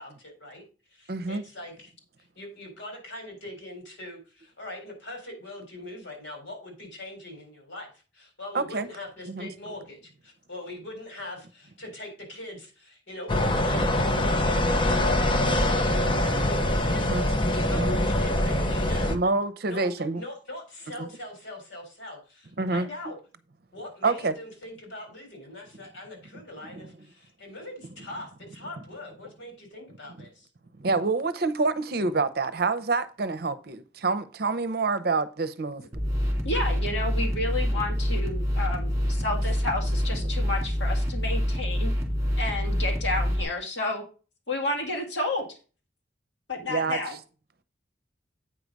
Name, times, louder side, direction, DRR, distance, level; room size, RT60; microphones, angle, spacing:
voice 1, 0.0-1.9 2.4-19.2 19.6-23.2 23.7-30.5, left 1 dB, 90° left, 4.0 m, -42 dB
voice 2, 1.1-1.4 8.5-8.9 9.3-9.5 17.1-17.2 17.8-18.0 19.1-20.2 21.0-21.1 22.6-22.9 24.0-24.3 26.6-26.9 30.8-35.9 36.2-36.4 40.2-40.3 46.7-47.0, right 3 dB, 55° right, 0.7 m, -27 dB
sound 1, 13.3-19.2, left 1 dB, 25° left, 0.7 m, -24 dB
sound 2, 35.9-43.4, equal, 15° right, 2.4 m, -26 dB
voice 3, 36.5-41.9 42.4-44.0 44.5-45.6 46.5-47.2, left 2 dB, 70° left, 2.0 m, -31 dB
8.6 x 4.8 x 5.3 m
head